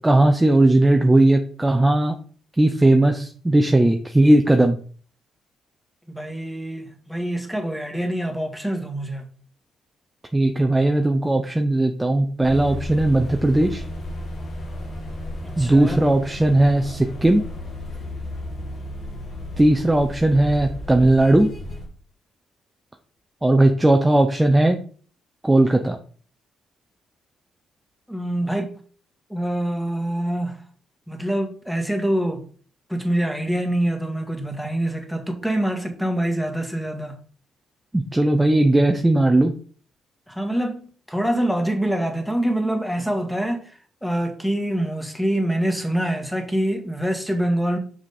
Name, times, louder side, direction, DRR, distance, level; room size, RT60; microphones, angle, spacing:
voice 1, 0.0-2.1 2.6-4.8 10.3-13.8 15.6-17.4 19.6-21.5 23.4-24.8 25.4-26.0 37.9-39.5, right 1 dB, 10° right, 0.7 m, -17 dB
voice 2, 6.1-9.2 15.4-16.0 28.1-28.8 29.3-30.6 31.1-32.5 32.9-37.2 40.3-47.8, right 1 dB, 5° left, 1.7 m, -25 dB
sound 1, 12.4-21.9, left 1 dB, 55° left, 2.2 m, -34 dB
6.2 x 5.1 x 4.2 m
cardioid pair, 90°, 0 cm